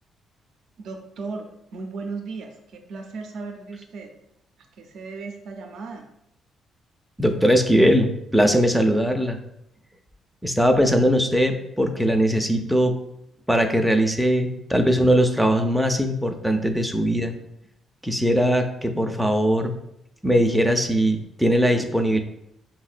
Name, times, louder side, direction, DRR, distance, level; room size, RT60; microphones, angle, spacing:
voice 1, 0.8-4.1 4.8-6.1, right 4 dB, 70° right, 4 dB, 0.4 m, -36 dB
voice 2, 7.2-9.4 10.4-13.0 13.5-17.3 18.0-19.8 20.2-22.2, equal, ahead, 5 dB, 0.4 m, -20 dB
5.3 x 2.1 x 2.4 m, 0.80 s
cardioid pair, 90°, 0 cm